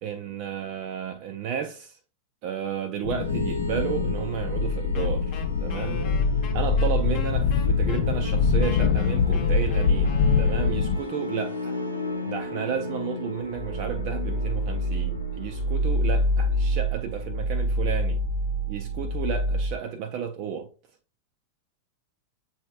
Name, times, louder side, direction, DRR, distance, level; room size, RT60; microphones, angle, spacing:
voice 1, 0.0-2.0 2.4-6.1 6.5-11.8 12.2-18.2 18.7-20.7, right 8 dB, 45° right, 0.4 m, -32 dB
sound 1, 3.0-11.0, left 5 dB, 55° left, 0.5 m, -24 dB
sound 2, 3.2-19.8, equal, 90° right, 1.0 m, -30 dB
Wind instrument woodwind instrument, 4.9-11.0, left 6 dB, 40° left, 0.9 m, -42 dB
7.6 x 2.8 x 2.3 m
figure-of-eight pair, 90°, 0 cm